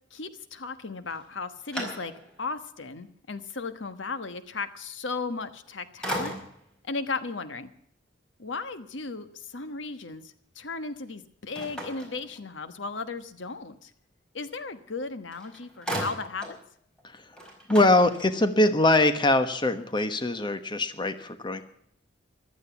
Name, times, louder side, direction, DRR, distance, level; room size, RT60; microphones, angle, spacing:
voice 1, 0.1-2.1 2.4-6.4 6.8-7.7 8.4-13.9 14.3-16.6, left 4 dB, 75° left, 11 dB, 1.3 m, -36 dB
sound 1, 1.1-2.5 3.0-3.1 5.4-5.7 6.0-6.8 11.5-12.8 14.9-15.0 15.3-16.6 17.0-17.1 17.3-18.6, right 1 dB, 5° left, 4.9 m, -37 dB
voice 2, 17.7-21.6, left 2 dB, 25° left, 10 dB, 1.2 m, -23 dB
15.5 x 12.0 x 7.1 m, 0.68 s
head